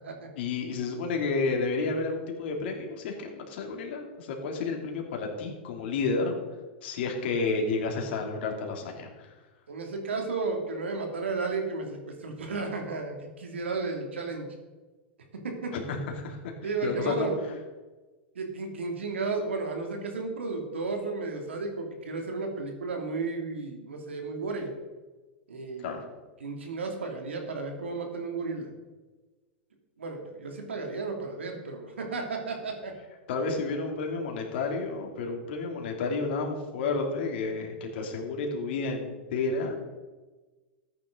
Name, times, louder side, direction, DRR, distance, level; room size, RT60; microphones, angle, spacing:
voice 1, 0.4-6.4 6.8-9.3 15.7-16.4 16.8-17.3 25.8-26.0 33.3-39.7, left 3 dB, 65° left, 2 dB, 2.8 m, -31 dB
voice 2, 9.7-14.5 15.4-15.7 16.6-17.5 18.3-24.7 25.5-26.0 26.4-28.7 30.0-32.9, right 3 dB, 90° right, 3 dB, 2.6 m, -33 dB
14.0 x 9.3 x 3.9 m, 1.2 s
hypercardioid pair, 110°, 6 cm